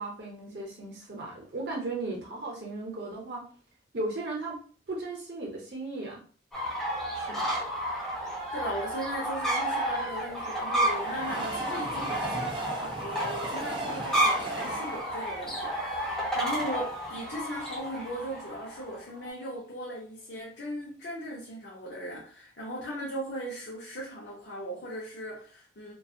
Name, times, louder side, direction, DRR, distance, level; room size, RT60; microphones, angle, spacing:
voice 1, 0.0-3.5 3.9-4.6 4.9-6.2 7.1-7.5, right 2 dB, 70° right, 0.7 m, -36 dB
sound 1, 6.5-19.3, right 1 dB, 5° left, 0.8 m, -31 dB
voice 2, 8.5-25.9, equal, 70° left, 0.6 m, -38 dB
Train, 9.8-16.8 17.3-17.4 17.6-17.7, right 2 dB, 25° right, 0.3 m, -39 dB
2.6 x 2.3 x 2.4 m
head